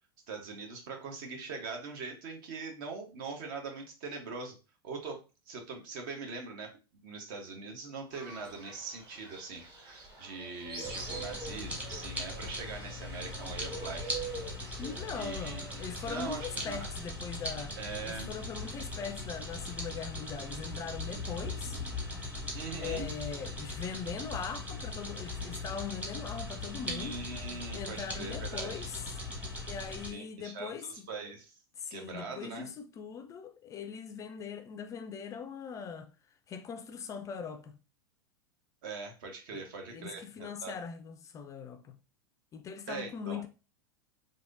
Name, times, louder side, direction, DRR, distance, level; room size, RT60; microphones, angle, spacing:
voice 1, 0.3-4.6 4.8-5.2 5.5-14.2 15.1-15.6 16.1-16.9 17.8-18.3 22.5-23.1 26.9-28.9 30.1-31.6 31.9-32.7 38.8-40.8 42.9-43.4, right 4 dB, 55° right, 1.0 m, -42 dB
Fowl, 8.1-16.9, right 3 dB, 35° right, 1.3 m, -46 dB
sound 1, 10.8-30.1, left 2 dB, 10° right, 1.0 m, -39 dB
voice 2, 14.8-17.8 18.0-21.8 22.8-27.1 27.7-29.0 29.7-31.1 31.8-36.1 36.5-37.8 39.5-39.6 39.9-42.0 42.5-43.5, left 6 dB, 25° left, 0.3 m, -41 dB
3.4 x 2.6 x 2.5 m
hypercardioid pair, 95°, 13 cm